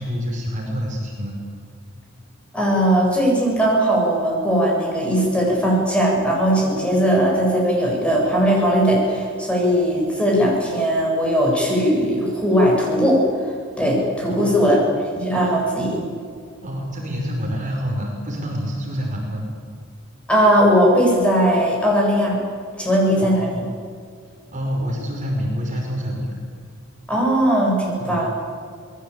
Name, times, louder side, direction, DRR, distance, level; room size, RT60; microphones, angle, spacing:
voice 1, 0.0-1.4 14.3-14.8 16.6-19.5 23.2-23.7 24.5-26.4 28.0-28.2, equal, 40° right, -1 dB, 5.6 m, -27 dB
voice 2, 2.5-13.2 13.8-14.8 15.2-16.1 20.3-22.4 22.8-23.6 27.1-28.3, equal, 5° left, -2 dB, 7.9 m, -18 dB
27.5 x 21.5 x 8.5 m, 2.2 s
head